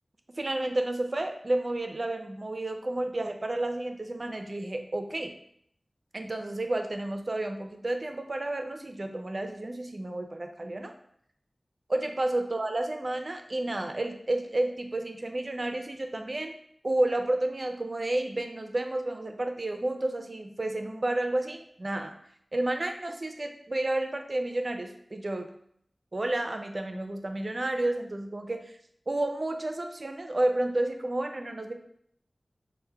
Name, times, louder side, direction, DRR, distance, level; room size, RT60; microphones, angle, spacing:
voice 1, 0.4-5.3 6.1-10.9 11.9-16.5 16.8-22.1 22.5-25.5 26.1-28.7 29.1-31.7, right 1 dB, 55° right, 5 dB, 0.4 m, -31 dB
3.3 x 2.1 x 4.3 m, 0.69 s
wide cardioid pair, 45°, 0 cm